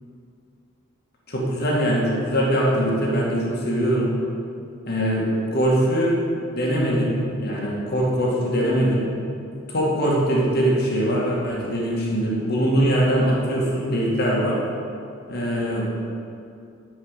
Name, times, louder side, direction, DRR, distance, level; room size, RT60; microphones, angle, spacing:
voice 1, 1.3-4.1 4.9-5.3 5.5-6.2 6.5-9.1 9.7-14.6 15.3-15.9, equal, 50° left, -4 dB, 2.1 m, -22 dB
11.0 x 5.5 x 8.2 m, 2.5 s
head